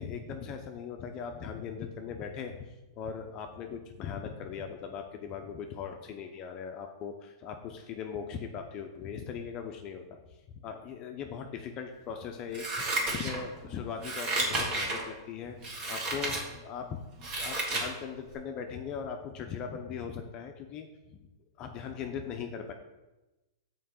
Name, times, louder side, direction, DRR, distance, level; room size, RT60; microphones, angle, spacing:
voice 1, 0.0-10.2 10.5-15.6 15.9-17.0 17.4-21.3 21.6-22.7, left 6 dB, 30° left, 4 dB, 0.6 m, -39 dB
Scissors, 12.5-13.6 14.0-15.0 15.6-16.4 16.9-17.9 18.3-18.4, right 2 dB, 35° right, 1.6 m, -32 dB
5.7 x 4.6 x 6.4 m, 1.1 s
hypercardioid pair, 140°, 2 cm